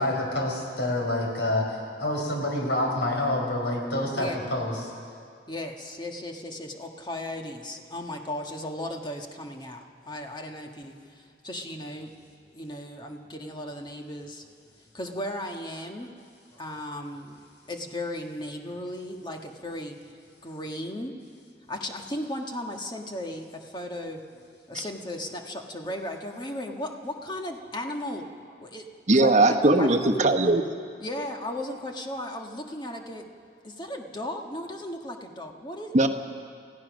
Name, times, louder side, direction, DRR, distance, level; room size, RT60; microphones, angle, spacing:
voice 1, 0.0-4.7, left 1 dB, 85° left, 1 dB, 4.6 m, -27 dB
voice 2, 5.5-16.1 16.5-30.2 31.0-33.3 33.6-36.1, left 1 dB, 25° left, 3 dB, 1.5 m, -36 dB
voice 3, 29.1-30.7 35.9-36.1, right 2 dB, 45° right, 5 dB, 1.2 m, -19 dB
28.5 x 15.5 x 6.3 m, 2.2 s
head